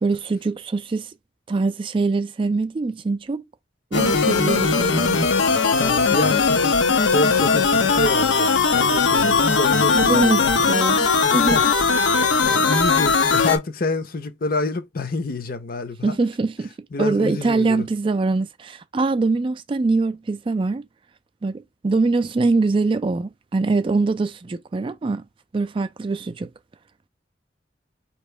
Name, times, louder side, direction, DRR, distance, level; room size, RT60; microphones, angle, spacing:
voice 1, 0.0-1.1 1.5-3.4 3.9-5.3 9.9-11.6 16.0-16.7 17.0-20.8 21.4-25.2 25.5-26.5, right 3 dB, 30° right, 0.3 m, -23 dB
sound 1, 3.9-13.6, left 4 dB, 85° left, 0.8 m, -19 dB
voice 2, 5.8-6.7 7.1-8.5 8.7-10.7 11.3-11.7 12.4-16.2 16.9-17.8, left 2 dB, 50° left, 0.7 m, -27 dB
4.5 x 3.0 x 3.2 m
head